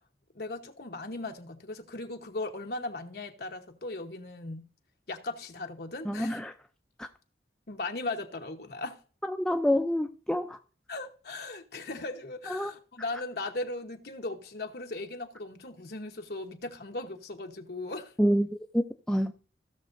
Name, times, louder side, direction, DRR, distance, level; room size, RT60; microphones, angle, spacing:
voice 1, 0.3-4.7 5.1-6.4 7.7-9.0 10.9-18.1, left 2 dB, 55° left, 1.1 m, -38 dB
voice 2, 6.1-6.5 7.0-7.1 9.3-10.6 12.5-12.7 18.2-19.3, equal, 5° left, 0.3 m, -27 dB
16.5 x 6.3 x 2.6 m
head